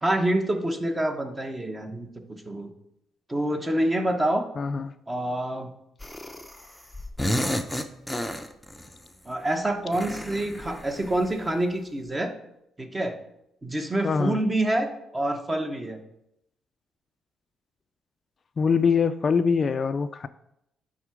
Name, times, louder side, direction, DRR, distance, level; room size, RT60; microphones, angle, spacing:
voice 1, 0.0-2.1 2.5-2.7 3.3-4.5 5.1-5.7 9.2-12.3 12.8-13.2 13.6-16.0, right 1 dB, 20° right, 6 dB, 1.0 m, -27 dB
voice 2, 4.6-4.9 14.0-14.4 18.6-20.3, left 5 dB, 40° left, 12 dB, 0.3 m, -23 dB
sound 1, 6.0-6.7 6.9-8.9 9.9-11.4, equal, 5° left, 0.6 m, -31 dB
10.0 x 3.8 x 4.9 m, 0.81 s
cardioid pair, 90°, 0 cm